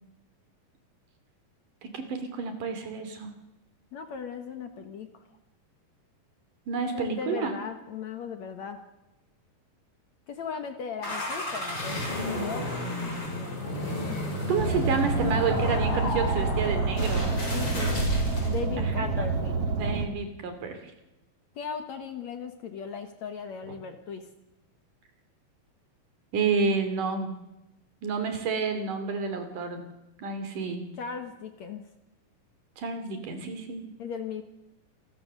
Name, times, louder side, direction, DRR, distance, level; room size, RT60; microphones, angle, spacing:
voice 1, 1.8-3.3 6.7-7.6 14.5-17.3 18.8-19.3 19.7-20.8 23.7-23.8 26.3-27.3 28.0-29.8 30.2-30.8 32.8-33.9, right 5 dB, 60° right, 7 dB, 4.1 m, -30 dB
voice 2, 3.9-5.2 6.9-8.8 10.3-14.2 17.5-19.7 21.6-24.3 31.0-31.8 34.0-34.4, left 6 dB, 60° left, 7 dB, 2.3 m, -38 dB
sound 1, 11.0-18.6, left 1 dB, 30° left, 7.0 m, -32 dB
Car, 14.6-20.1, right 4 dB, 45° right, 3.0 m, -28 dB
28.0 x 21.0 x 6.8 m, 0.96 s
omnidirectional pair, 4.3 m